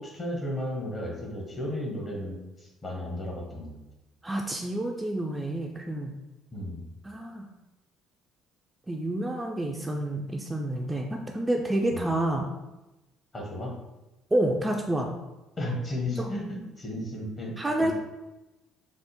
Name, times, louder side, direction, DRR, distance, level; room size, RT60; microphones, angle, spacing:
voice 1, 0.0-3.8 6.5-6.8 11.9-12.0 13.3-13.7 15.6-17.9, left 1 dB, 35° left, -1 dB, 0.9 m, -34 dB
voice 2, 4.2-6.1 7.0-7.5 8.9-12.5 14.3-15.1 16.2-16.3 17.6-17.9, right 1 dB, 15° right, 1 dB, 0.3 m, -29 dB
3.5 x 2.0 x 2.9 m, 1.0 s
figure-of-eight pair, 55°, 0 cm